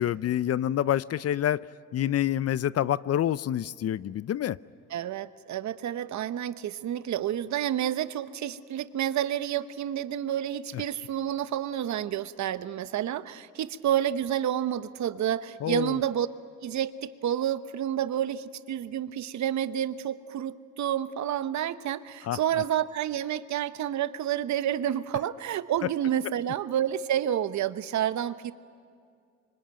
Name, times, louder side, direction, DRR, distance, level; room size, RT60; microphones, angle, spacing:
voice 1, 0.0-1.6 1.9-4.6 15.6-16.0 22.2-22.4, left 11 dB, 55° left, 19 dB, 0.6 m, -27 dB
voice 2, 4.9-16.3 16.6-28.5, right 10 dB, 70° right, 13 dB, 1.0 m, -29 dB
25.0 x 24.5 x 9.0 m, 2.2 s
cardioid pair, 90°, 30 cm